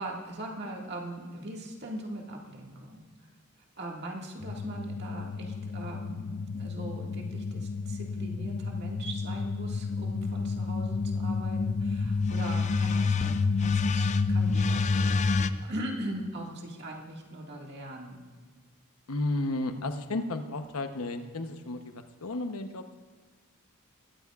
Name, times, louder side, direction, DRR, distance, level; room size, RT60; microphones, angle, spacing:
voice 1, 0.0-3.0 3.8-18.2, right 1 dB, 50° right, -1 dB, 2.0 m, -40 dB
sound 1, 4.4-15.5, left 4 dB, 35° left, 0.4 m, -29 dB
voice 2, 19.1-22.9, left 2 dB, 85° left, 7 dB, 0.9 m, -33 dB
21.0 x 13.0 x 2.4 m, 1.5 s
head